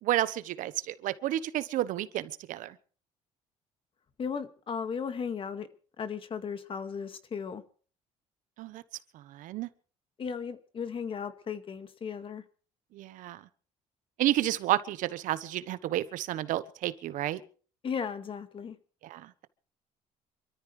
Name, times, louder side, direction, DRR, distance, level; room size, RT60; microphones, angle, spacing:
voice 1, 0.0-2.8 8.6-8.8 9.1-9.7 12.9-13.4 14.2-17.4 19.0-19.3, right 14 dB, 75° right, 1.2 m, -31 dB
voice 2, 4.2-5.7 6.0-7.6 10.2-12.4 17.8-18.8, left 6 dB, 40° left, 2.0 m, -36 dB
26.5 x 13.5 x 3.3 m
cardioid pair, 115°, 14 cm